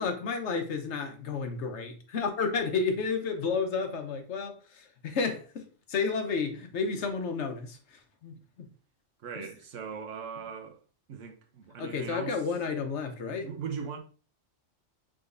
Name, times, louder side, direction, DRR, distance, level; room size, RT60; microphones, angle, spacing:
voice 1, 0.0-8.7 9.4-9.5 11.8-13.5, left 5 dB, 65° left, 1.0 m, -32 dB
voice 2, 9.2-10.8 11.1-12.4 13.3-14.0, right 6 dB, 75° right, 1.1 m, -39 dB
4.8 x 3.8 x 2.5 m
omnidirectional pair, 1.3 m